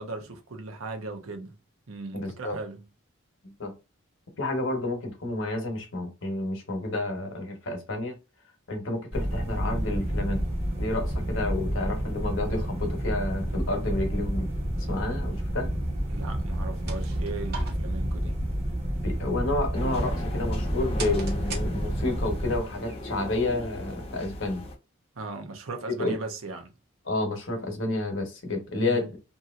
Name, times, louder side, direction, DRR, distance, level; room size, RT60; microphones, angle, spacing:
voice 1, 0.0-1.6 1.9-2.9 16.1-18.4 25.2-26.7 28.8-29.1, right 3 dB, 85° right, 0.7 m, -37 dB
voice 2, 2.1-2.6 3.6-3.7 4.4-8.1 8.7-10.4 10.8-14.5 14.8-15.7 19.0-24.6 26.0-26.2 27.0-29.2, left 2 dB, 70° left, 1.0 m, -30 dB
sound 1, 9.1-22.6, equal, 30° right, 1.3 m, -29 dB
sound 2, 16.6-22.2, right 5 dB, 50° right, 0.7 m, -43 dB
sound 3, 19.7-24.7, left 1 dB, 30° left, 0.7 m, -38 dB
2.8 x 2.7 x 2.4 m
head